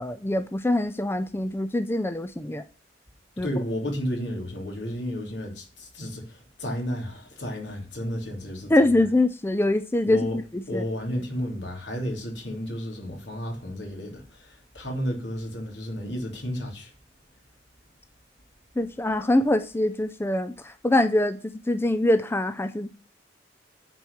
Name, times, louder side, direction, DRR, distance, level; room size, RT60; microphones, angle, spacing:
voice 1, 0.0-2.6 3.4-3.5 8.7-10.3 10.7-10.8 18.8-22.9, left 1 dB, 15° left, 0.4 m, -24 dB
voice 2, 3.4-8.7 10.1-10.4 10.7-16.9, equal, 80° left, 3.1 m, -32 dB
8.8 x 4.6 x 7.1 m
head